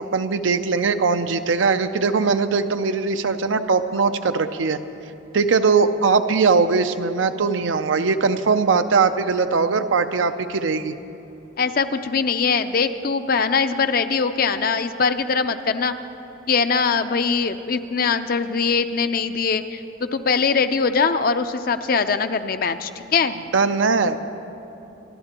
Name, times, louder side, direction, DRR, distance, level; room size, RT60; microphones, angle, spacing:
voice 1, 0.0-4.8 5.3-11.0 23.5-24.2, right 4 dB, 85° right, 9 dB, 0.6 m, -20 dB
voice 2, 11.6-15.9 16.5-23.4, left 5 dB, 50° left, 9 dB, 0.5 m, -22 dB
27.0 x 12.0 x 3.0 m, 2.8 s
head